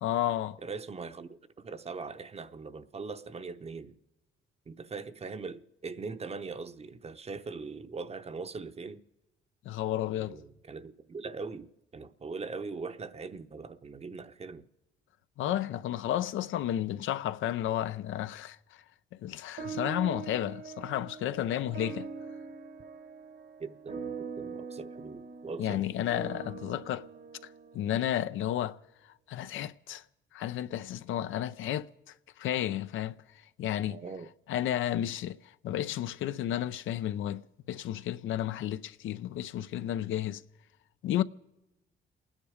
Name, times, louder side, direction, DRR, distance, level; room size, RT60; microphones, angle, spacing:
voice 1, 0.0-0.6 9.7-10.4 15.4-18.8 19.2-22.1 25.6-27.1 27.7-28.8 29.3-30.0 30.3-33.2 33.6-34.0 34.5-40.4 41.0-41.2, left 12 dB, 80° left, 0.6 m, -32 dB
voice 2, 0.6-4.0 4.7-9.0 10.2-14.7 23.6-26.1 33.9-34.3, right 4 dB, 30° right, 0.8 m, -41 dB
sound 1, 19.6-28.2, right 5 dB, 60° right, 1.4 m, -43 dB
29.0 x 10.0 x 4.9 m
cardioid pair, 90°, 20 cm